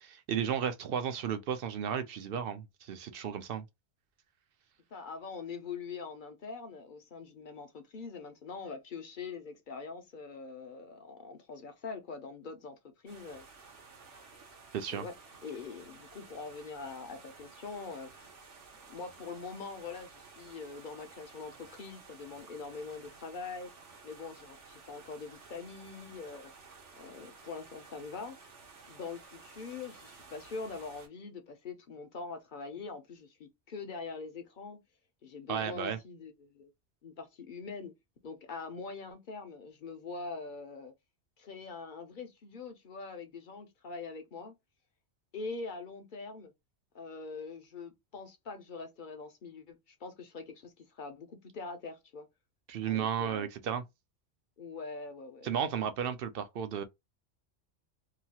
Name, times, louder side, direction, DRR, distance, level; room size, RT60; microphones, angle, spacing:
voice 1, 0.0-3.6 14.7-15.0 35.5-36.0 52.7-53.8 55.4-56.8, right 8 dB, 60° right, 0.6 m, -34 dB
voice 2, 4.9-13.5 14.9-15.1 15.4-18.4 18.9-23.7 24.0-26.5 27.0-28.4 28.9-34.8 35.2-36.7 37.0-37.9 38.2-40.9 41.4-44.5 45.3-46.5 46.9-52.3 52.8-53.5 54.6-55.5, left 4 dB, 55° left, 0.6 m, -43 dB
sound 1, 13.1-31.1, right 4 dB, 80° right, 1.2 m, -54 dB
2.9 x 2.3 x 2.8 m
omnidirectional pair, 1.2 m